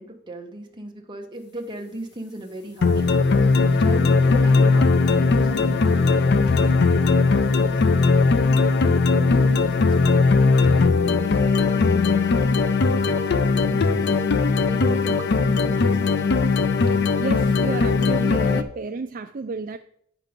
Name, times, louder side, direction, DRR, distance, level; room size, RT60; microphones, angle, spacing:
voice 1, 0.0-8.1 8.8-16.3, right 1 dB, 25° right, 1 dB, 1.3 m, -39 dB
sound 1, 2.8-18.6, left 4 dB, 60° left, 0.5 m, -19 dB
voice 2, 16.9-19.8, right 4 dB, 45° right, 7 dB, 0.4 m, -31 dB
9.2 x 6.0 x 5.2 m, 0.67 s
head